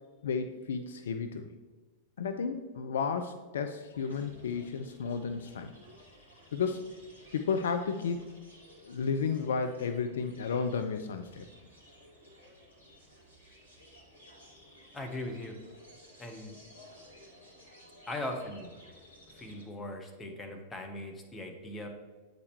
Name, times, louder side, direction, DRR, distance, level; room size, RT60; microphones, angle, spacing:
voice 1, 0.2-1.5 2.2-5.7 6.5-6.9 7.3-8.3 8.8-11.5, left 5 dB, 65° left, 8 dB, 0.4 m, -33 dB
sound 1, 3.9-19.6, equal, 85° left, 1.4 m, -56 dB
voice 2, 14.9-15.6 16.2-16.6 18.1-18.7 19.3-21.9, left 1 dB, 15° left, 2 dB, 1.1 m, -39 dB
8.1 x 5.1 x 3.2 m, 1.3 s
figure-of-eight pair, 90°, 0 cm